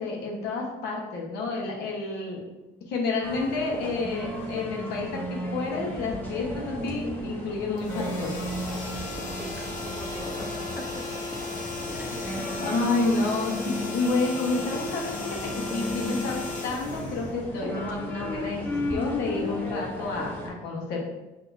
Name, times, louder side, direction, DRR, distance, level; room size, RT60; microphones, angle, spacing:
voice 1, 0.0-2.4 2.9-8.3 12.2-21.0, left 3 dB, 80° left, -1 dB, 1.1 m, -30 dB
sound 1, 3.2-20.5, equal, 10° left, 0.9 m, -35 dB
sound 2, 7.8-17.7, left 3 dB, 50° left, 1.0 m, -35 dB
voice 2, 9.3-11.0 11.9-12.3, right 1 dB, 10° right, 1 dB, 0.6 m, -42 dB
5.9 x 2.8 x 2.7 m, 1.0 s
cardioid pair, 110°, 17 cm